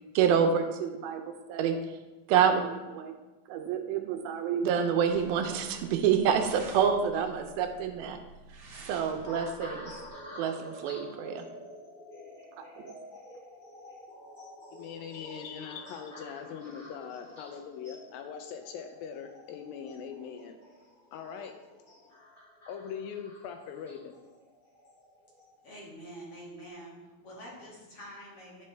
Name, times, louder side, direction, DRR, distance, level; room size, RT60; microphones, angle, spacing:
voice 1, 0.2-2.0 2.3-3.1 3.5-8.2 8.9-9.9 10.3-11.5 12.6-12.9, right 7 dB, 80° right, 6 dB, 2.5 m, -28 dB
sound 1, 5.1-10.1, right 2 dB, 50° right, 1.6 m, -50 dB
sound 2, 9.2-25.7 26.4-26.7, equal, 20° left, 2.5 m, -49 dB
voice 2, 14.7-20.6 21.1-21.5 22.7-24.1, left 7 dB, 80° left, 5 dB, 2.3 m, -41 dB
voice 3, 25.6-27.0 27.2-28.6, equal, 50° left, -6 dB, 2.4 m, -46 dB
10.5 x 5.5 x 3.2 m, 1.1 s
omnidirectional pair, 4.4 m